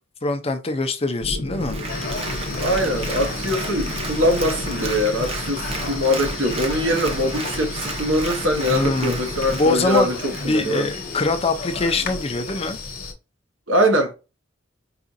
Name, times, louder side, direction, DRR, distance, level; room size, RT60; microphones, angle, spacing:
voice 1, 0.2-1.8 8.7-9.2 9.5-12.8, left 2 dB, 30° left, 0.6 m, -23 dB
sound 1, 1.2-9.7, left 1 dB, 75° left, 0.8 m, -32 dB
Applause, 1.5-11.3 11.7-11.8, right 3 dB, 30° right, 0.8 m, -34 dB
sound 2, 1.9-13.1, left 4 dB, 45° left, 1.1 m, -34 dB
voice 2, 2.6-10.9 13.7-14.1, equal, 85° right, 1.2 m, -22 dB
4.8 x 2.4 x 2.6 m
head